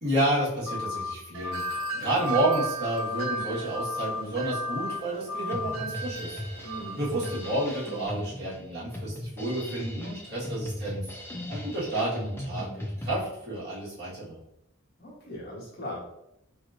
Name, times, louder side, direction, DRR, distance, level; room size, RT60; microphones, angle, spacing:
voice 1, 0.0-1.6 1.9-6.4 6.9-11.0 11.5-12.7 13.0-14.4, right 1 dB, 50° right, -8 dB, 1.5 m, -30 dB
sound 1, 0.7-1.1 1.4-1.9 2.2-2.7 3.0-3.4 3.7-4.2 4.5-5.0 5.3-5.8, left 4 dB, 70° left, 1.3 m, -34 dB
Wind chime, 1.3-8.1, right 6 dB, 70° right, 0.4 m, -38 dB
Drum kit, 5.5-13.1, left 1 dB, 10° left, 0.4 m, -37 dB
voice 2, 6.6-7.0 15.0-16.0, left 1 dB, 50° left, -5 dB, 1.2 m, -39 dB
4.1 x 3.0 x 2.5 m, 0.82 s
head